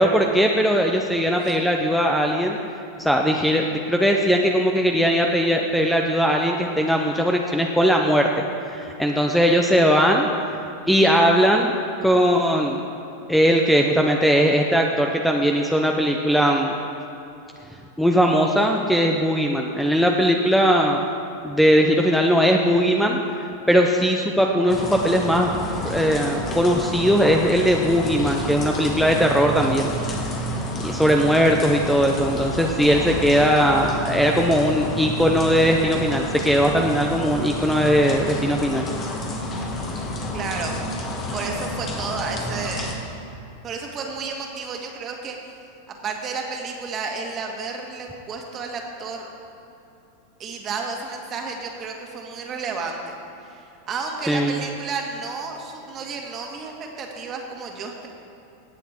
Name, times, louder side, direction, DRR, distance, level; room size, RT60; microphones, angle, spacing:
voice 1, 0.0-2.6 3.0-8.3 8.7-10.3 10.9-11.7 12.0-12.8 13.3-16.8 18.0-21.0 21.4-23.2 23.7-25.5 25.8-30.4 30.8-38.9 54.3-54.6, equal, ahead, 1 dB, 0.8 m, -19 dB
sound 1, 24.7-42.9, equal, 30° left, 2.0 m, -30 dB
voice 2, 40.3-40.7 41.0-43.0 43.6-45.4 45.9-49.3 50.4-53.1 53.4-58.1, right 4 dB, 35° right, 2 dB, 1.9 m, -32 dB
17.5 x 7.2 x 4.5 m, 2.9 s
hypercardioid pair, 105°, 0 cm